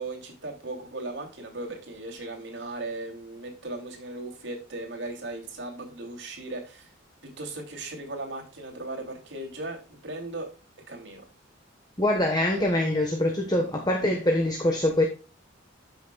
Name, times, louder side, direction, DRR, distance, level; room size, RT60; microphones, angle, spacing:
voice 1, 0.0-6.9 7.2-10.5 10.9-11.2 12.5-12.8, right 2 dB, 65° right, 0 dB, 2.9 m, -37 dB
voice 2, 12.0-15.0, left 1 dB, 20° left, 1 dB, 1.2 m, -24 dB
13.0 x 6.3 x 2.3 m, 0.33 s
head